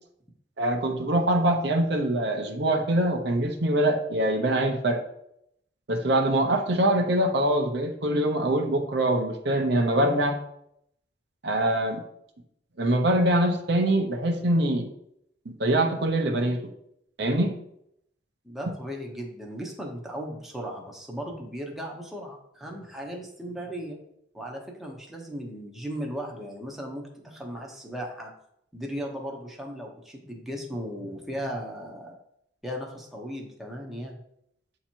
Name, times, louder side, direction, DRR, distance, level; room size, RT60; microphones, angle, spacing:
voice 1, 0.6-5.0 5.9-10.4 11.4-12.0 12.8-14.9 15.6-16.6 17.2-17.5, right 1 dB, 60° right, 4 dB, 0.8 m, -24 dB
voice 2, 18.4-24.0 24.3-28.3 28.7-32.2 32.6-34.2, equal, ahead, 0 dB, 0.9 m, -36 dB
7.9 x 2.9 x 4.4 m, 0.75 s
head